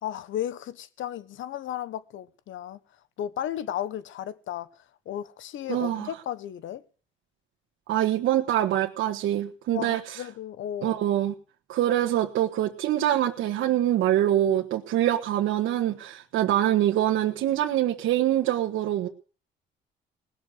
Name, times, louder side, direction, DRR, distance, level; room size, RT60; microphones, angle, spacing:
voice 1, 0.0-2.8 3.2-4.7 5.1-6.8 9.7-11.0, left 11 dB, 75° left, 1.2 m, -34 dB
voice 2, 5.7-6.1 7.9-10.2 10.8-11.3 11.7-19.1, right 12 dB, 85° right, 1.6 m, -24 dB
19.5 x 6.7 x 9.3 m
cardioid pair, 90°, 20 cm